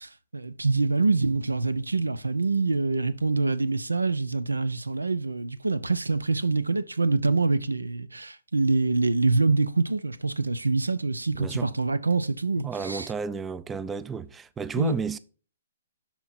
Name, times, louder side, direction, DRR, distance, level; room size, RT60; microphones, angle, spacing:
voice 1, 0.0-13.1 14.8-14.9, right 3 dB, 90° right, 0.5 m, -25 dB
voice 2, 11.3-11.7 12.6-15.2, right 6 dB, 15° right, 0.4 m, -32 dB
12.5 x 4.3 x 2.6 m
figure-of-eight pair, 125°, 0 cm